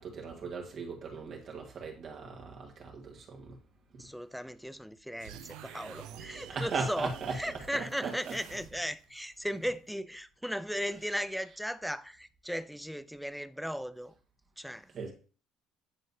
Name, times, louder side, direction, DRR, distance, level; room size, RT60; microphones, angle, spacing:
voice 1, 0.0-3.6 6.5-7.4 7.7-8.3 14.9-15.1, right 4 dB, 50° right, 1.5 m, -38 dB
voice 2, 4.0-14.1 14.6-14.9, equal, ahead, 0.4 m, -37 dB
sound 1, 5.2-9.0, right 9 dB, 85° right, 0.7 m, -48 dB
9.9 x 3.8 x 2.7 m
cardioid pair, 100°, 0 cm